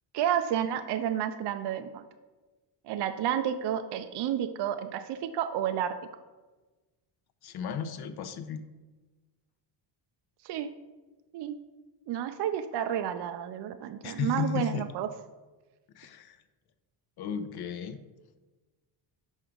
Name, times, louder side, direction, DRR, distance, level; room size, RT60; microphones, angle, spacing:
voice 1, 0.1-2.0 2.8-6.0 10.4-10.7 11.3-11.6 12.1-15.1, right 10 dB, 55° right, 9 dB, 0.5 m, -30 dB
voice 2, 7.4-8.7 14.0-14.9 15.9-16.4 17.2-18.0, left 8 dB, 50° left, 10 dB, 0.6 m, -34 dB
6.2 x 4.5 x 3.8 m, 1.2 s
cardioid pair, 95°, 50 cm